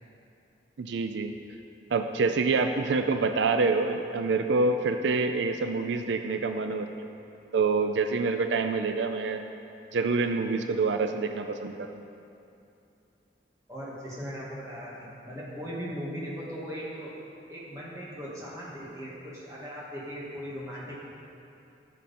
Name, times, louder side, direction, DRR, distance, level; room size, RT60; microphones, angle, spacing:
voice 1, 0.8-1.3 1.9-6.9 7.5-9.5 9.9-12.1, right 4 dB, 90° right, 7 dB, 0.4 m, -26 dB
voice 2, 13.7-17.1 17.5-21.1, equal, 15° right, -7 dB, 2.0 m, -38 dB
14.0 x 6.4 x 4.3 m, 2.7 s
head